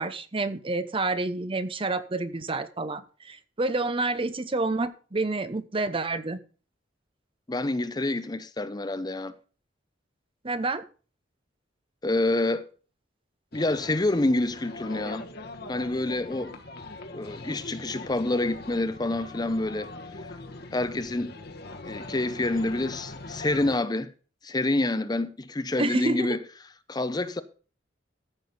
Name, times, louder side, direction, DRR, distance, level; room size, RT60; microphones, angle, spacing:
voice 1, 0.0-6.4 10.4-10.8 25.8-26.4, right 2 dB, 30° right, 0.7 m, -29 dB
voice 2, 7.5-9.3 12.0-12.7 13.5-15.2 15.7-16.5 17.1-19.9 20.7-21.3 21.8-24.1 24.4-26.4 26.9-27.4, left 2 dB, 20° left, 0.6 m, -27 dB
sound 1, 13.5-23.8, left 2 dB, 55° left, 1.3 m, -41 dB
14.0 x 6.2 x 5.3 m
head